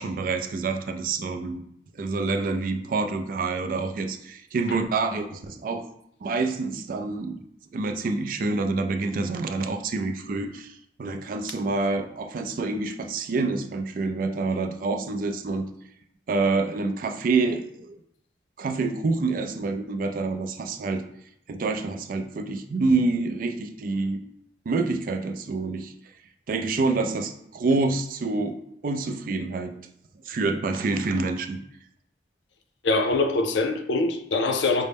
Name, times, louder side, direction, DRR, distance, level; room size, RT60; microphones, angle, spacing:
voice 1, 0.0-1.6 1.9-5.8 6.2-7.4 7.7-15.7 16.3-18.0 18.6-21.0 21.5-24.2 24.7-25.9 26.5-29.7 30.3-31.6, right 3 dB, 50° right, 0.3 m, -27 dB
voice 2, 32.8-34.9, left 3 dB, 85° left, 0.5 m, -23 dB
5.2 x 2.0 x 3.4 m
head